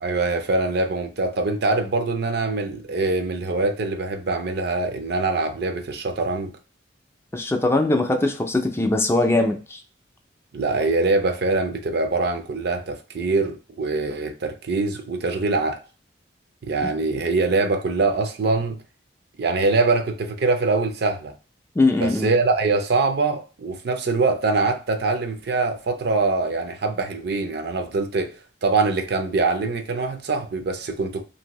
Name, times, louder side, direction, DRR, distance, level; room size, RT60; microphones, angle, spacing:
voice 1, 0.0-6.5 10.5-15.8 16.7-18.8 19.4-21.3 22.0-28.3 28.6-31.2, right 3 dB, 60° right, 0.5 m, -23 dB
voice 2, 7.3-9.8 16.8-16.9 21.8-22.3, left 2 dB, 15° left, 0.3 m, -21 dB
2.6 x 2.6 x 2.9 m
head